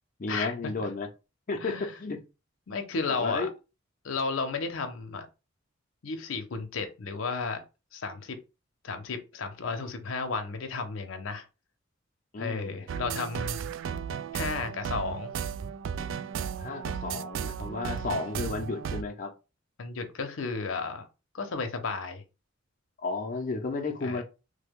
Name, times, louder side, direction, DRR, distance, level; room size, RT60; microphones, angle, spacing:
voice 1, 0.2-1.1 1.5-2.2 3.1-3.5 12.3-12.9 16.6-19.3 23.0-24.2, left 3 dB, 45° left, 0.5 m, -33 dB
voice 2, 1.6-2.0 2.7-3.5 4.0-5.3 6.0-7.6 7.9-8.4 8.8-11.5 12.4-13.6 14.3-15.3 19.8-21.1 21.3-22.2 24.0-24.2, left 4 dB, 85° left, 0.6 m, -33 dB
sound 1, 12.9-19.0, right 7 dB, 70° right, 0.3 m, -34 dB
3.2 x 2.2 x 3.5 m
head